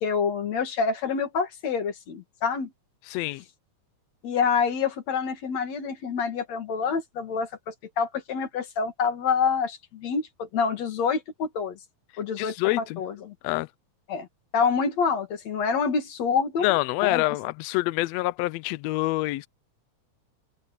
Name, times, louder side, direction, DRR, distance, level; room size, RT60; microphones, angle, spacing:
voice 1, 0.0-2.7 4.2-11.8 12.2-13.3 14.1-14.3 14.5-16.7 17.0-17.2, left 5 dB, 60° left, 3.3 m, -27 dB
voice 2, 3.1-3.4 12.4-13.0 13.4-13.7 16.6-19.5, left 20 dB, 85° left, 1.5 m, -26 dB
omnidirectional pair, 3.5 m